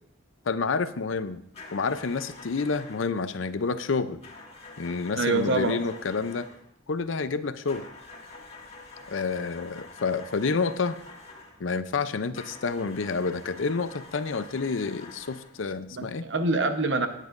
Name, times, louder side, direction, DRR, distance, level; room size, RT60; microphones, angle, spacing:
voice 1, 0.5-1.4 1.7-4.2 4.8-6.5 6.9-7.8 9.1-11.0 11.6-16.2, left 4 dB, 85° left, 12 dB, 0.6 m, -29 dB
sound 1, 1.5-3.1 4.2-6.7 7.7-11.6 12.3-15.6, left 3 dB, 35° left, 1.8 m, -46 dB
voice 2, 5.2-5.8 15.9-17.1, right 2 dB, 65° right, 7 dB, 1.0 m, -25 dB
18.5 x 9.1 x 2.6 m, 0.73 s
head